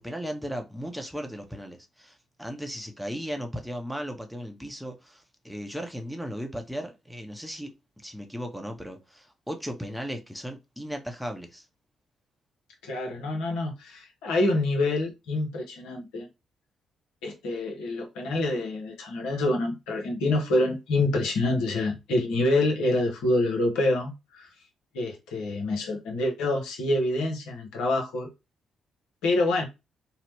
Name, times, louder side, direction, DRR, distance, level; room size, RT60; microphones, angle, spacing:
voice 1, 0.0-11.6, equal, ahead, 0.7 m, -36 dB
voice 2, 12.8-16.3 17.2-24.5 24.9-28.3 29.2-29.7, left 2 dB, 75° left, 0.6 m, -26 dB
2.8 x 2.0 x 3.1 m
hypercardioid pair, 45°, 0 cm